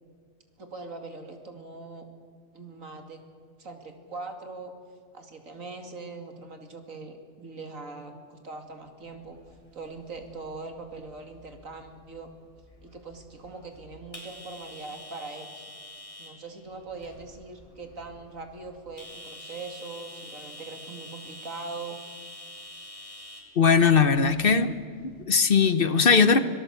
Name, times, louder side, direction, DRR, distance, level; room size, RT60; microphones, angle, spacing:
voice 1, 0.6-2.1 2.5-3.2 3.6-4.7 5.1-9.4 9.7-12.3 12.8-15.7 16.2-22.0, right 3 dB, 90° right, 5 dB, 2.9 m, -41 dB
sound 1, 9.1-25.2, left 1 dB, 25° left, 3.5 m, -47 dB
voice 2, 23.6-24.8 25.0-26.4, left 5 dB, 45° left, 12 dB, 1.1 m, -20 dB
25.0 x 18.0 x 8.2 m, 2.1 s
omnidirectional pair, 1.4 m